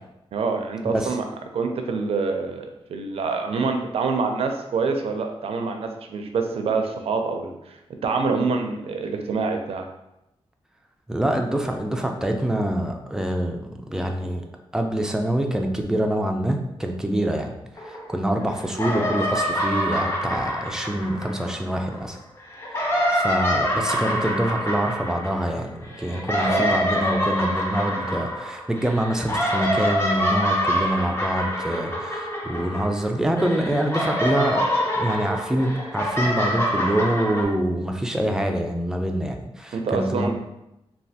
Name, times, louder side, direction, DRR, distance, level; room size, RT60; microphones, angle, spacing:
voice 1, 0.3-1.2 1.5-9.9 26.4-26.8 39.7-40.3, right 4 dB, 80° right, 4 dB, 0.4 m, -26 dB
voice 2, 11.1-13.6 13.9-14.4 14.7-17.5 18.1-22.2 22.8-34.6 34.9-40.3, right 1 dB, 5° right, 3 dB, 0.3 m, -25 dB
sound 1, 17.8-18.4 18.7-22.0 22.5-33.1 33.4-37.4, equal, 25° left, 0.6 m, -26 dB
3.2 x 2.3 x 2.7 m, 0.88 s
wide cardioid pair, 110°, 10 cm